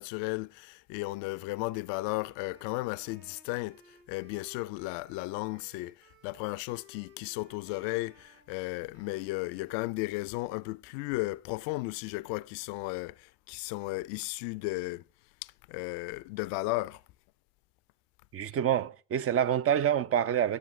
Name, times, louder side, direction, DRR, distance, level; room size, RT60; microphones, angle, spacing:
voice 1, 0.0-15.0 15.4-17.0, left 22 dB, 65° left, 0.5 m, -35 dB
Wind instrument woodwind instrument, 1.3-10.0, equal, 60° right, 3.5 m, -61 dB
voice 2, 18.3-20.6, right 9 dB, 30° right, 0.4 m, -27 dB
12.0 x 7.4 x 3.8 m
hypercardioid pair, 50°, 47 cm